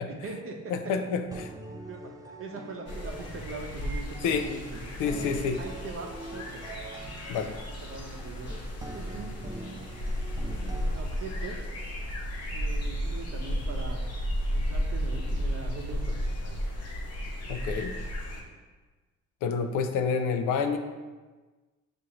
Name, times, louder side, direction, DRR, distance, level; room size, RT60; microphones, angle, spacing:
voice 1, 0.0-0.7 1.9-4.9 5.3-6.7 7.8-8.5 8.9-9.4 10.7-11.6 12.5-14.0 14.5-16.6, right 3 dB, 45° right, 1 dB, 0.7 m, -41 dB
voice 2, 0.7-1.5 4.2-4.5 5.0-5.6 7.3-7.6 17.5-18.0 19.4-20.8, left 5 dB, 85° left, 7 dB, 0.5 m, -28 dB
sound 1, 0.8-11.0, right 2 dB, 15° right, 0.3 m, -44 dB
sound 2, 2.9-18.4, equal, 55° left, 0.9 m, -33 dB
6.0 x 2.5 x 2.9 m, 1.3 s
cardioid pair, 90°, 30 cm